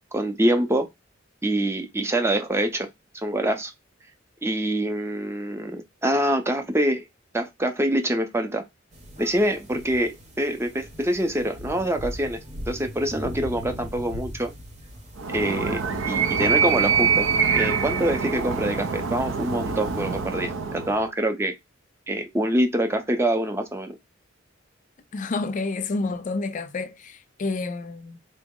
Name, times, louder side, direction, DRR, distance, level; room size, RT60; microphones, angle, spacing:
voice 1, 0.1-0.9 1.4-2.9 3.2-3.7 4.4-7.1 7.3-8.6 9.2-12.4 12.7-14.5 15.3-17.3 17.5-21.5 22.1-24.0, right 1 dB, 15° right, 0.5 m, -25 dB
sound 1, 8.9-20.2, equal, 35° right, 0.8 m, -41 dB
Animal, 15.2-21.0, right 6 dB, 70° right, 0.5 m, -25 dB
voice 2, 25.1-28.2, left 3 dB, 40° left, 0.4 m, -29 dB
3.8 x 2.0 x 3.6 m
head